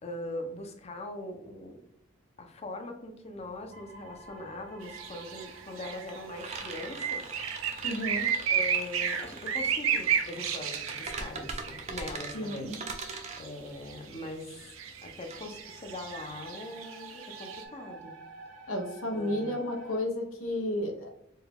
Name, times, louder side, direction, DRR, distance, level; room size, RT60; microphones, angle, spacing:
voice 1, 0.0-1.8 2.4-7.2 8.5-12.8 13.4-14.6 15.0-18.1 19.1-19.6, left 2 dB, 30° left, 4 dB, 0.6 m, -41 dB
sound 1, 3.4-3.5 3.7-16.4, right 4 dB, 35° right, 0.5 m, -42 dB
sound 2, 3.7-11.3 15.3-20.0, right 3 dB, 60° right, 0.9 m, -50 dB
sound 3, 4.8-17.6, right 7 dB, 85° right, 0.6 m, -33 dB
voice 2, 7.8-8.3 12.3-12.8 18.7-21.1, left 1 dB, 80° left, 2 dB, 0.8 m, -32 dB
4.4 x 2.3 x 3.4 m, 0.73 s
head